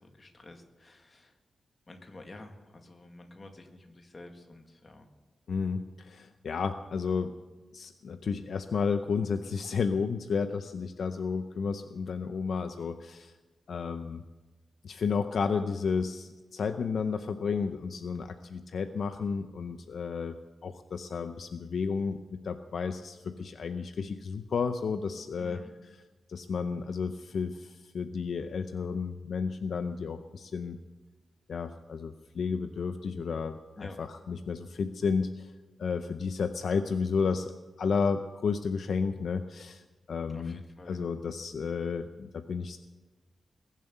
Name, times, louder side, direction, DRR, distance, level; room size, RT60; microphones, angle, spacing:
voice 1, 0.0-1.4 1.9-5.1 25.4-25.7 33.8-34.0 40.3-41.2, left 2 dB, 30° left, 5 dB, 1.8 m, -49 dB
voice 2, 5.5-7.3 7.7-13.3 13.7-14.2 14.8-20.4 20.6-25.6 26.3-30.8 31.5-35.5 35.8-37.5 37.8-39.8 40.1-40.6 40.9-42.8, left 5 dB, 60° left, 9 dB, 0.6 m, -32 dB
20.5 x 7.5 x 8.1 m, 1.3 s
wide cardioid pair, 155°, 0 cm